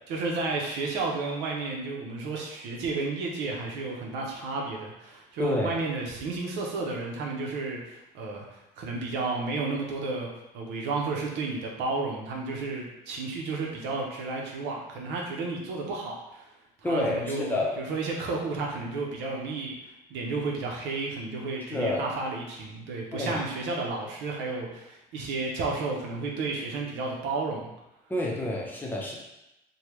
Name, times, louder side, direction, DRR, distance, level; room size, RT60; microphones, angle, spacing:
voice 1, 0.1-10.3 10.5-16.5 16.8-19.7 20.1-27.7, right 3 dB, 90° right, -1 dB, 0.6 m, -32 dB
voice 2, 5.4-5.8 16.8-17.7 21.7-22.1 23.1-23.4 28.1-29.1, left 2 dB, 10° left, -3 dB, 0.7 m, -29 dB
3.3 x 2.2 x 3.0 m, 0.91 s
cardioid pair, 110°, 17 cm